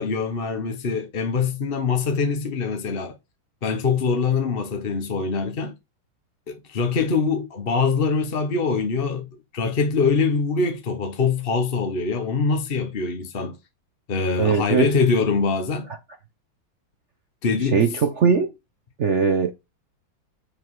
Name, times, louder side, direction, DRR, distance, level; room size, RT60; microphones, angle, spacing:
voice 1, 0.0-3.1 3.6-5.7 6.5-13.6 14.1-15.9 17.4-17.8, left 5 dB, 40° left, 0.9 m, -23 dB
voice 2, 14.4-14.9 17.7-18.5 19.0-19.5, right 5 dB, 65° right, 0.7 m, -20 dB
7.7 x 5.1 x 4.8 m
omnidirectional pair, 2.2 m